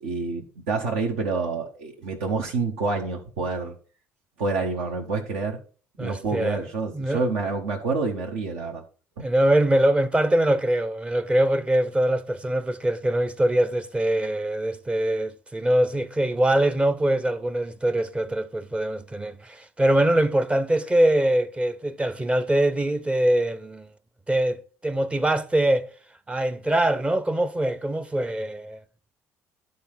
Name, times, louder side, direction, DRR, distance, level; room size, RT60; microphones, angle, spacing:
voice 1, 0.0-3.7 4.4-5.6 6.0-8.8, right 4 dB, 65° right, 1.2 m, -28 dB
voice 2, 6.0-6.6 6.9-7.3 9.2-23.9 24.3-25.9 26.3-28.8, right 1 dB, 15° right, 0.8 m, -23 dB
11.5 x 3.9 x 5.6 m
figure-of-eight pair, 55°, 8 cm